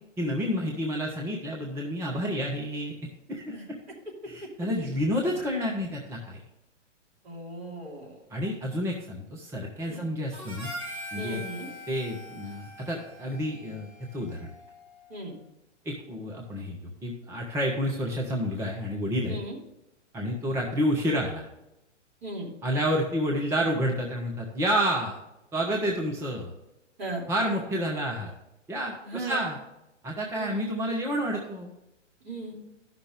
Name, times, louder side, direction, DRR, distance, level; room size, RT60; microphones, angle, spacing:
voice 1, 0.2-2.9 3.3-3.5 4.3-6.4 8.3-10.7 11.1-11.4 11.9-14.5 15.8-19.4 20.1-21.5 22.6-25.2 25.5-26.5 27.3-28.3 28.7-29.6 30.0-31.7, equal, 5° right, -1 dB, 1.0 m, -29 dB
voice 2, 7.2-8.2 9.9-10.0 11.2-11.7 15.1-15.3 19.3-19.6 22.2-22.5 27.0-27.2 29.0-29.4 30.3-30.6 32.2-32.6, right 2 dB, 55° right, -2 dB, 3.1 m, -37 dB
Harmonica, 10.3-14.8, equal, 35° right, 2.8 m, -42 dB
13.0 x 6.0 x 3.6 m, 0.90 s
figure-of-eight pair, 115°, 37 cm